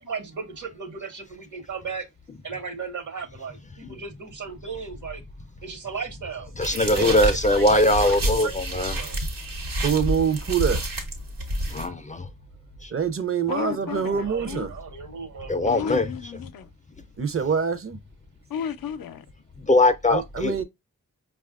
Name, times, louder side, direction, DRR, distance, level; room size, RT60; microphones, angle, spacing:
voice 1, 0.0-2.1 2.4-5.2 5.6-6.5 6.8-9.2 13.9-15.9, right 6 dB, 65° right, 1.0 m, -35 dB
voice 2, 6.6-9.0 11.7-12.3 12.8-12.9 15.5-16.1 19.6-20.6, left 1 dB, 25° left, 0.3 m, -21 dB
sound 1, 6.6-11.9, right 1 dB, 90° right, 1.1 m, -29 dB
voice 3, 9.8-10.8 12.9-14.7 17.2-18.0 20.1-20.6, right 7 dB, 40° right, 0.5 m, -25 dB
voice 4, 13.5-14.7 15.7-16.7 18.5-19.2, left 8 dB, 85° left, 0.5 m, -33 dB
5.0 x 2.3 x 2.3 m
wide cardioid pair, 80°, 33 cm